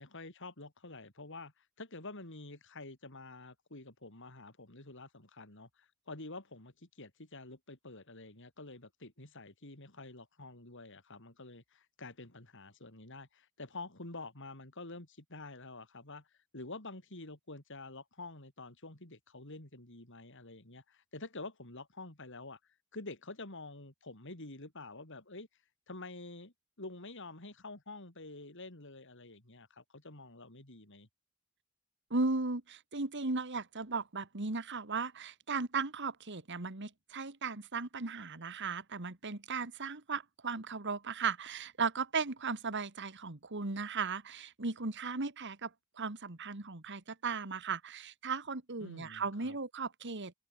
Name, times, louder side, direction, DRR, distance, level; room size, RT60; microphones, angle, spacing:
voice 1, 0.0-16.3 16.5-22.6 22.9-25.5 25.9-31.1 48.8-49.6, left 2 dB, 60° left, 4.1 m, -48 dB
voice 2, 32.1-50.3, right 4 dB, 55° right, 1.9 m, -36 dB
open air
head